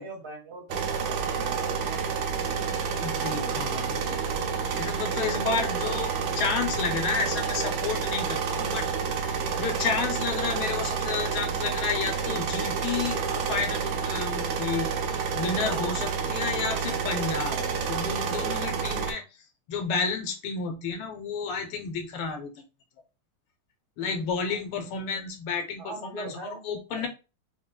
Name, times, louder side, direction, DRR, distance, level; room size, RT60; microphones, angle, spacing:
voice 1, 0.0-2.0 3.2-3.5 25.8-26.6 26.9-27.1, right 2 dB, 15° right, -3 dB, 1.2 m, -41 dB
sound 1, 0.7-19.1, right 6 dB, 75° right, 1.4 m, -29 dB
voice 2, 3.0-8.9 9.1-19.2 19.7-22.5 24.0-27.1, left 5 dB, 85° left, 5 dB, 1.6 m, -31 dB
4.7 x 2.4 x 2.2 m, 0.30 s
omnidirectional pair, 2.3 m